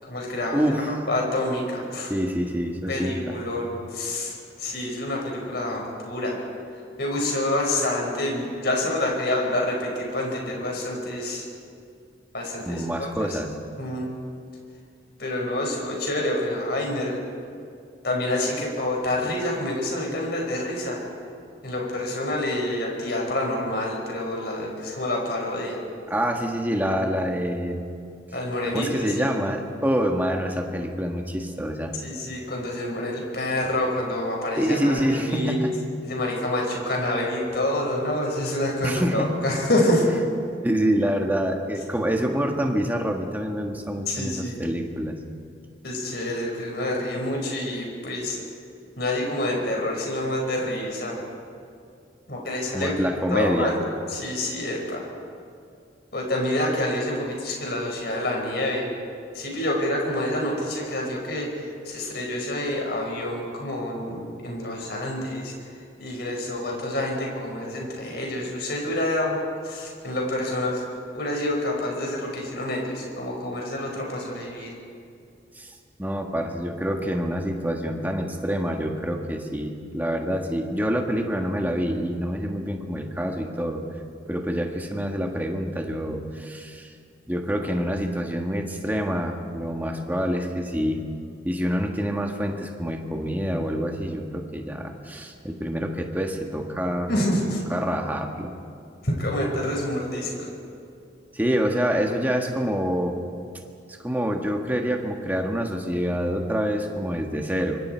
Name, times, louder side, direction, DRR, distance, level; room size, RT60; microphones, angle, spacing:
voice 1, 0.0-0.6 0.9-2.1 2.9-6.4 7.0-11.4 12.3-13.4 13.8-14.1 15.2-17.2 18.0-21.0 21.6-25.8 28.3-29.3 32.0-35.7 36.0-40.0 44.1-44.6 45.8-48.4 49.0-51.2 52.3-52.9 53.3-53.8 54.1-55.0 56.1-58.9 59.3-65.5 66.0-70.8 71.1-74.7 97.1-97.6 99.0-100.5, left 1 dB, 60° left, -1 dB, 5.4 m, -27 dB
voice 2, 0.5-1.0 2.1-3.3 12.6-13.5 26.1-27.9 28.7-31.9 34.6-35.7 38.8-39.3 40.6-45.2 52.7-53.7 75.5-75.7 76.0-83.8 84.3-86.9 87.3-91.0 91.4-97.1 97.7-98.5 101.3-103.2 104.0-107.8, equal, 10° right, 2 dB, 1.7 m, -26 dB
25.0 x 25.0 x 4.6 m, 2.4 s
head